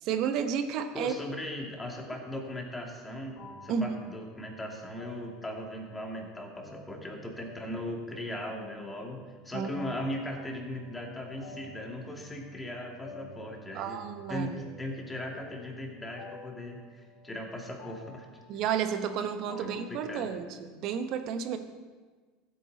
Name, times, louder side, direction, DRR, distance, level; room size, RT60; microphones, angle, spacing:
voice 1, 0.0-1.1 3.7-3.9 9.5-9.9 13.7-14.5 18.5-21.6, right 7 dB, 55° right, 8 dB, 1.1 m, -31 dB
voice 2, 0.9-3.4 3.6-14.0 14.3-18.3 19.6-20.3, left 1 dB, 15° left, 1 dB, 2.5 m, -38 dB
sound 1, 3.3-20.0, left 1 dB, 65° left, 3.4 m, -51 dB
14.5 x 8.6 x 4.1 m, 1.4 s
hypercardioid pair, 85°, 0 cm